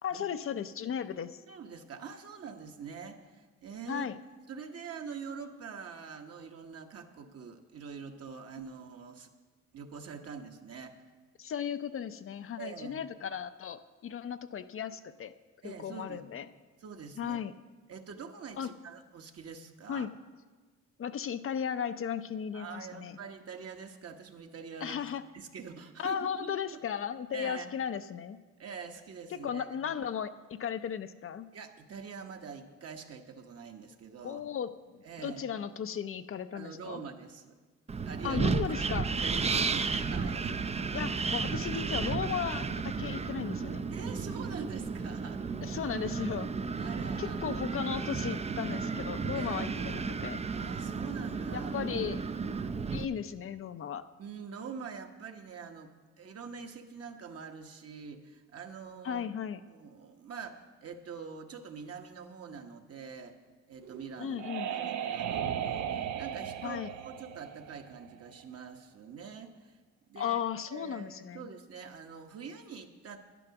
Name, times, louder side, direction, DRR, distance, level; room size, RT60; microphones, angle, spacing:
voice 1, 0.0-1.4 3.9-4.2 11.4-15.4 15.6-16.5 17.2-17.5 18.6-18.7 19.9-20.1 21.0-23.2 24.8-25.2 26.0-28.4 29.3-31.5 34.2-37.0 38.2-39.1 40.9-43.9 45.6-46.5 47.2-50.4 51.5-52.2 52.9-54.1 59.0-59.6 64.2-64.7 66.6-66.9 70.2-71.5, left 8 dB, 45° left, 11 dB, 0.5 m, -36 dB
voice 2, 1.5-4.1 4.5-9.3 9.7-11.0 12.6-13.0 15.6-16.5 16.8-17.4 17.9-20.1 22.5-26.8 27.3-27.7 28.6-29.9 31.5-34.4 35.0-35.4 36.5-37.5 38.1-38.5 38.9-40.6 43.9-45.4 46.8-47.5 49.3-49.7 50.5-51.9 54.2-55.9 56.2-59.2 59.7-63.4 63.7-64.4 64.7-69.8 70.1-70.4 70.7-73.2, right 6 dB, 50° right, 4 dB, 1.3 m, -45 dB
Wind, 37.9-53.0, right 4 dB, 20° right, 0.5 m, -33 dB
sound 1, 63.8-68.4, right 9 dB, 70° right, 0.7 m, -36 dB
10.5 x 10.0 x 5.9 m, 1.3 s
cardioid pair, 90°, 30 cm